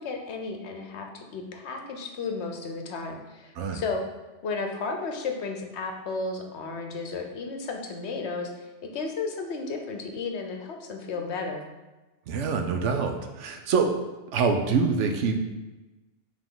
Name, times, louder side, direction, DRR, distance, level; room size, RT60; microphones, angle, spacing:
voice 1, 0.0-4.1 4.4-11.6, left 4 dB, 65° left, 3 dB, 1.0 m, -33 dB
voice 2, 12.3-13.9 14.3-15.4, right 5 dB, 75° right, 4 dB, 1.0 m, -25 dB
7.1 x 3.6 x 3.8 m, 1.1 s
omnidirectional pair, 1.2 m